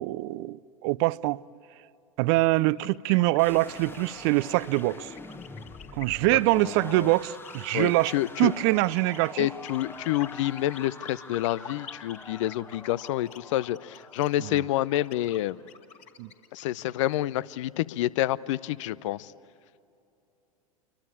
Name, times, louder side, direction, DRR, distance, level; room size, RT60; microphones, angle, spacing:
voice 1, 0.0-1.4 2.2-5.1 6.0-9.5 14.4-14.6 16.2-16.3, right 20 dB, 50° right, 0.6 m, -24 dB
sound 1, 2.8-17.1, left 7 dB, 35° left, 2.4 m, -47 dB
sound 2, 3.4-15.4, left 2 dB, 10° left, 1.2 m, -45 dB
voice 2, 6.3-7.1 7.7-8.5 9.4-15.6 16.5-19.3, left 14 dB, 55° left, 0.7 m, -28 dB
27.5 x 24.0 x 8.7 m
figure-of-eight pair, 85°, 18 cm